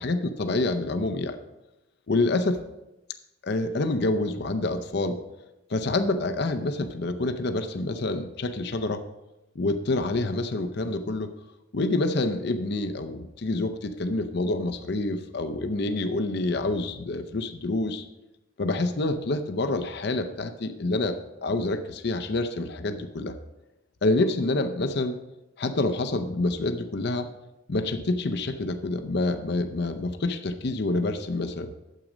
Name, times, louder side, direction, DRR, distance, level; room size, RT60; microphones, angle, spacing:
voice 1, 0.0-1.4 2.1-2.6 3.4-5.2 5.7-9.0 9.6-11.3 11.7-18.0 18.6-23.3 24.0-25.2 25.6-27.3 27.7-31.7, left 2 dB, 55° left, 8 dB, 0.6 m, -27 dB
9.1 x 7.6 x 5.0 m, 0.95 s
head